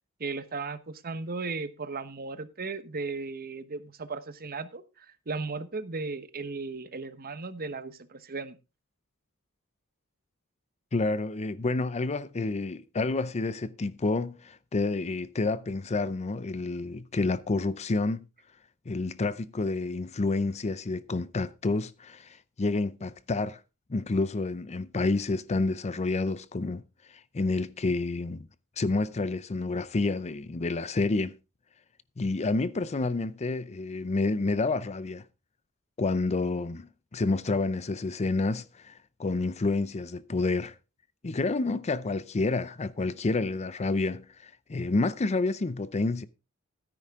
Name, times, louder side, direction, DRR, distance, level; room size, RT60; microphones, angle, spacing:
voice 1, 0.2-8.6, right 4 dB, 45° right, 1.0 m, -36 dB
voice 2, 10.9-18.2 18.9-23.6 23.9-26.8 27.3-28.5 28.8-31.4 32.2-35.2 36.0-40.7 41.2-46.3, left 3 dB, 30° left, 0.5 m, -29 dB
13.0 x 10.0 x 3.6 m
head